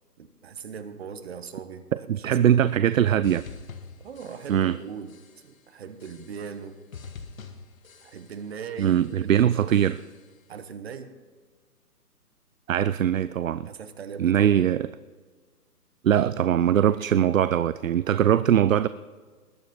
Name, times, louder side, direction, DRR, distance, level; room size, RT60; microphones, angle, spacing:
voice 1, 0.2-2.6 4.0-5.1 5.4-6.8 8.0-9.0 9.2-9.9 10.5-11.2 13.6-14.5, right 6 dB, 40° right, 10 dB, 1.2 m, -39 dB
voice 2, 1.9-3.4 4.5-4.8 8.8-10.0 12.7-13.7 14.2-14.9 16.0-18.9, right 10 dB, 60° right, 15 dB, 0.5 m, -21 dB
sound 1, 3.2-4.8 5.1-5.6 6.0-6.6 6.9-8.5 8.8-9.3 9.7-10.3, left 5 dB, 60° left, 1.6 m, -46 dB
20.5 x 9.4 x 4.3 m, 1.5 s
hypercardioid pair, 150°, 47 cm